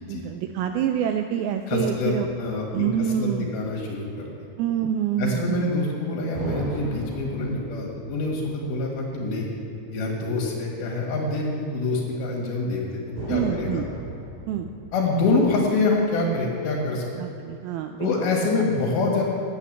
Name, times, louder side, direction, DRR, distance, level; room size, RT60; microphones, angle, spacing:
voice 1, 0.1-2.3 2.7-3.5 4.6-5.8 13.3-13.9 14.5-14.7 17.2-18.3, right 9 dB, 85° right, 6 dB, 2.2 m, -26 dB
voice 2, 1.7-2.1 2.4-4.3 5.2-9.5 9.9-13.0 13.3-13.8 14.9-17.1 18.0-19.2, left 3 dB, 70° left, -1 dB, 3.5 m, -25 dB
sound 1, 2.1-4.0 6.3-10.1 10.4-10.5 13.2-16.8, right 1 dB, 40° right, 4.1 m, -38 dB
9.1 x 8.8 x 7.4 m, 2.9 s
omnidirectional pair, 4.7 m